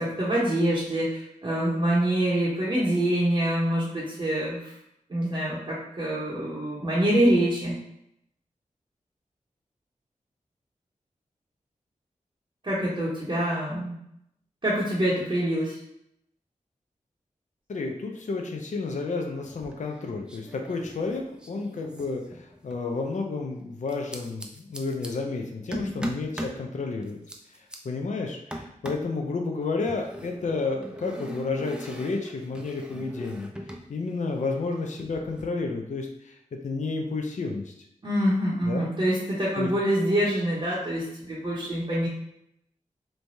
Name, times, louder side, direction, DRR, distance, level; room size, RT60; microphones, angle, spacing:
voice 1, 0.0-4.7 5.1-7.7 12.6-14.0 14.6-15.8 25.8-26.0 38.0-42.1, right 1 dB, 40° right, -7 dB, 0.7 m, -25 dB
voice 2, 17.7-27.2 27.8-33.5 33.9-36.4 36.6-37.6 38.6-38.9 39.6-39.7, left 3 dB, 65° left, 2 dB, 0.4 m, -31 dB
sound 1, 19.5-20.0 20.3-22.9 23.9-25.1 25.7-26.6 27.0-27.8 28.5-29.1 29.9-33.9 34.1-35.4, equal, 5° right, 0.4 m, -40 dB
3.1 x 2.2 x 2.6 m, 0.76 s
cardioid pair, 55°, 14 cm